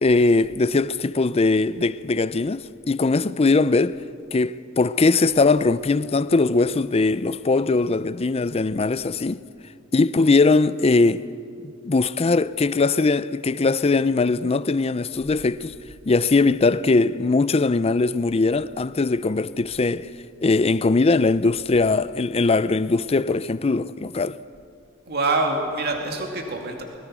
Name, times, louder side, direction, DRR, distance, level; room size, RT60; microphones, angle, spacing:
voice 1, 0.0-4.0 4.3-9.4 9.9-11.3 11.8-15.7 16.1-20.1 20.4-24.4, left 3 dB, 30° left, 0.5 m, -20 dB
voice 2, 25.1-26.8, right 2 dB, 50° right, 2.3 m, -25 dB
23.5 x 21.5 x 6.2 m
head